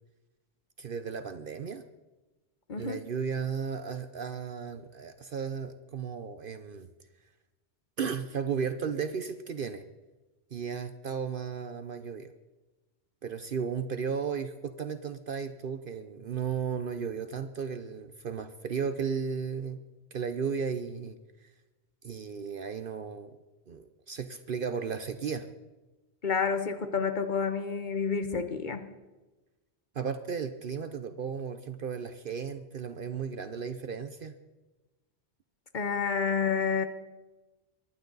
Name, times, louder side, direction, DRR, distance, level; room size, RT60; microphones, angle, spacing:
voice 1, 0.8-1.8 2.8-6.9 8.0-9.8 10.5-12.3 13.2-19.8 20.1-21.2 22.0-23.3 23.7-25.5 29.9-34.3, right 6 dB, 55° right, 9 dB, 0.8 m, -34 dB
voice 2, 2.7-3.0 26.2-28.9 35.7-36.8, left 5 dB, 45° left, 8 dB, 1.2 m, -29 dB
23.5 x 12.0 x 4.0 m, 1.1 s
omnidirectional pair, 1.1 m